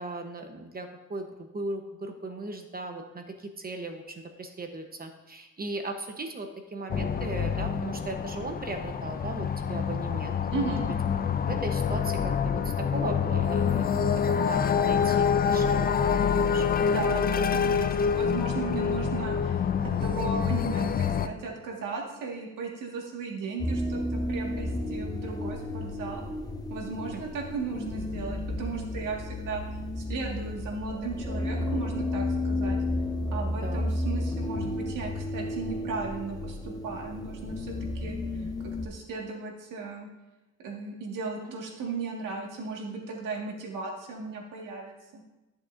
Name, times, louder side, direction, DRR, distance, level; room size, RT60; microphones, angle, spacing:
voice 1, 0.0-10.4 10.6-10.8 11.4-16.7 27.1-27.2 33.6-33.8, right 2 dB, 30° right, 5 dB, 1.0 m, -38 dB
sound 1, 6.9-21.3, left 7 dB, 30° left, 0.4 m, -26 dB
voice 2, 10.5-10.9 16.8-26.2 26.7-29.6 30.0-32.8 33.3-38.2 38.6-40.1 40.6-45.2, right 4 dB, 90° right, 0 dB, 1.9 m, -36 dB
sound 2, 23.6-38.9, left 1 dB, 10° left, 0.9 m, -32 dB
13.5 x 7.1 x 2.6 m, 1.0 s
cardioid pair, 110°, 31 cm